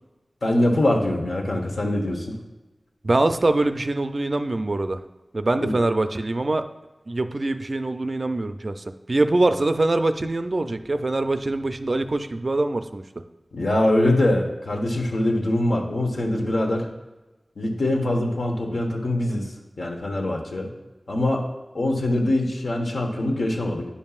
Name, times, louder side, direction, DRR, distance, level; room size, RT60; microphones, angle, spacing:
voice 1, 0.4-2.4 5.5-5.8 13.5-16.9 17.6-20.7 21.1-21.5 21.7-23.9, left 1 dB, 80° left, 0 dB, 1.1 m, -23 dB
voice 2, 3.0-5.0 5.3-6.6 7.1-13.0, right 2 dB, 45° right, 9 dB, 0.4 m, -23 dB
10.0 x 5.4 x 2.4 m, 1.1 s
wide cardioid pair, 75°, 0 cm